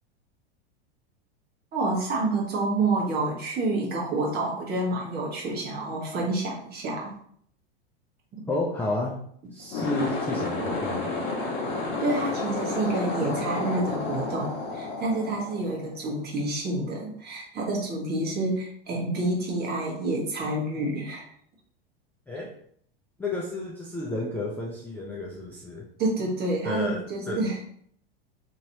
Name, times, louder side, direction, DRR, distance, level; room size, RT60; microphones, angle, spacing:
voice 1, 1.7-7.1 8.4-8.5 12.0-21.3 26.0-27.6, right 2 dB, 30° right, -2 dB, 1.3 m, -28 dB
voice 2, 8.5-9.2 9.5-11.1 22.3-22.5 23.2-25.9 26.6-27.4, left 2 dB, 5° left, -4 dB, 0.4 m, -31 dB
sound 1, 9.6-16.1, left 3 dB, 35° left, 1.2 m, -31 dB
3.0 x 2.9 x 2.7 m, 0.63 s
hypercardioid pair, 115°, 31 cm